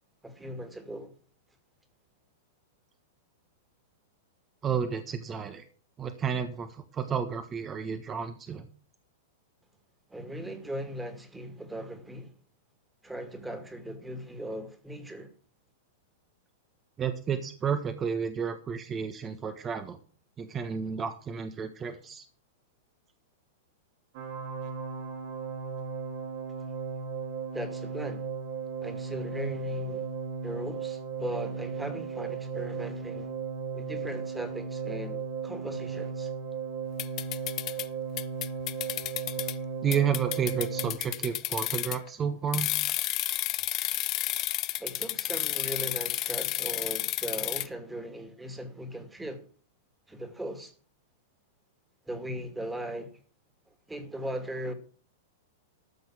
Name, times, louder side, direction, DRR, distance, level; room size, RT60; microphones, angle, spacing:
voice 1, 0.2-1.1 10.1-12.3 13.0-15.3 27.5-28.3 28.8-30.1 30.4-33.3 33.7-36.3 44.8-49.4 50.1-50.7 52.1-53.2 53.9-54.7, equal, 10° right, 2.4 m, -38 dB
voice 2, 4.6-5.6 6.0-8.7 17.0-20.0 20.4-22.2 39.8-42.7, right 7 dB, 25° right, 1.4 m, -31 dB
sound 1, 24.1-40.9, right 5 dB, 55° right, 3.0 m, -36 dB
sound 2, 37.0-37.9 38.2-39.5 39.9-42.1 42.5-47.7, left 16 dB, 40° left, 0.8 m, -31 dB
13.5 x 6.2 x 7.5 m
hypercardioid pair, 110°, 0 cm